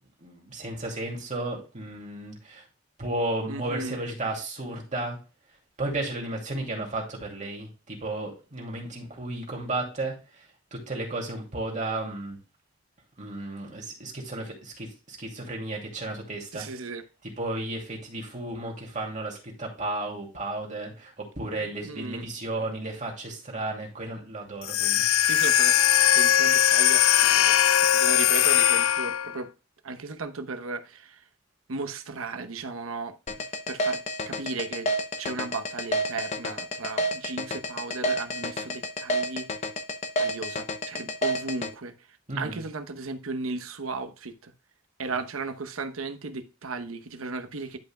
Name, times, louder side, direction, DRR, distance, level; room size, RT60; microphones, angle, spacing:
voice 1, 0.2-2.6 3.0-5.2 5.8-10.4 10.7-12.4 13.2-16.7 17.4-25.0 42.3-42.6, right 2 dB, 40° right, 2.5 m, -33 dB
voice 2, 3.5-4.0 16.5-17.0 21.8-22.2 25.3-25.8 26.1-29.5 29.8-31.2 31.7-34.9 35.2-39.5 40.2-41.9 42.4-44.5 45.0-47.8, right 3 dB, 90° right, 0.9 m, -35 dB
sound 1, 24.6-29.4, left 11 dB, 80° left, 0.4 m, -20 dB
sound 2, 33.3-41.7, equal, 35° left, 0.8 m, -29 dB
11.0 x 5.3 x 2.2 m
head